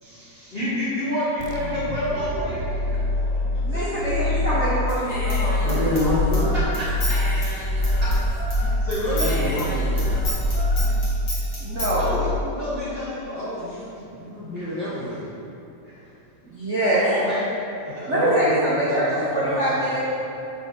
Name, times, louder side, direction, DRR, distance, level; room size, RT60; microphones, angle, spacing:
voice 1, 0.0-4.2 5.6-5.7 6.5-7.2 8.0-8.1 8.8-9.3 11.9-12.3 12.5-13.4 15.8-16.0 16.9-17.5 17.9-18.1, left 1 dB, 85° left, -11 dB, 0.5 m, -29 dB
sound 1, 1.4-12.9, left 2 dB, 90° right, 1.5 m, -25 dB
voice 2, 3.6-5.9 11.6-12.1 16.5-17.0 18.1-20.0, right 1 dB, 65° right, -11 dB, 0.7 m, -24 dB
Human voice / Scissors, 4.9-8.6 8.9-11.9, equal, 35° left, 1.6 m, -29 dB
voice 3, 5.4-6.5 9.0-10.1 13.3-15.2 17.9-20.0, left 1 dB, 65° left, -10 dB, 1.0 m, -28 dB
5.2 x 4.7 x 6.1 m, 3.0 s
omnidirectional pair, 3.6 m